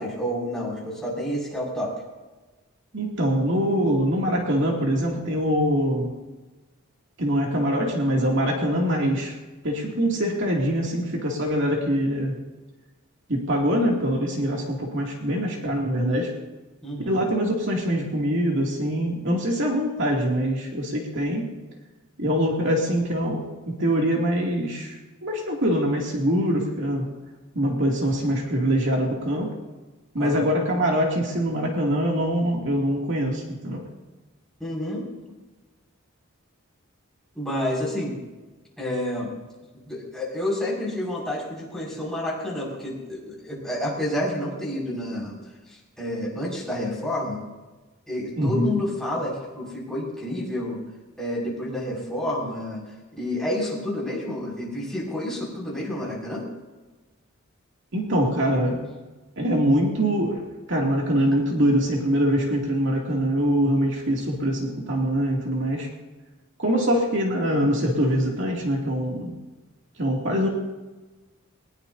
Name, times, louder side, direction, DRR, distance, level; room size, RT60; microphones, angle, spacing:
voice 1, 0.0-1.9 16.8-17.1 30.2-30.4 34.6-35.0 37.3-38.2 38.8-39.3 39.9-45.3 45.7-47.4 48.1-50.8 51.2-52.8 53.1-56.4, left 1 dB, ahead, -6 dB, 6.5 m, -29 dB
voice 2, 2.9-6.1 7.2-9.4 9.6-12.4 13.3-16.3 17.1-21.5 22.2-27.1 27.5-29.5 30.1-33.8 48.4-48.8 57.9-58.8 59.4-65.9 66.6-69.4 70.0-70.5, equal, 60° right, -2 dB, 2.8 m, -24 dB
22.5 x 20.0 x 2.8 m, 1.2 s
head